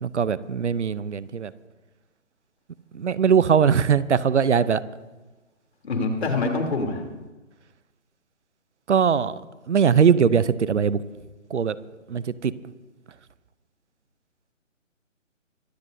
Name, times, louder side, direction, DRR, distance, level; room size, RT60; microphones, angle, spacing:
voice 1, 0.0-1.5 2.9-4.8 8.9-9.4 9.7-11.0 11.5-11.7 12.1-12.5, right 7 dB, 60° right, 17 dB, 0.7 m, -20 dB
voice 2, 5.8-7.0, left 3 dB, 55° left, 3 dB, 3.3 m, -25 dB
23.5 x 15.0 x 2.7 m, 1.1 s
figure-of-eight pair, 160°, 39 cm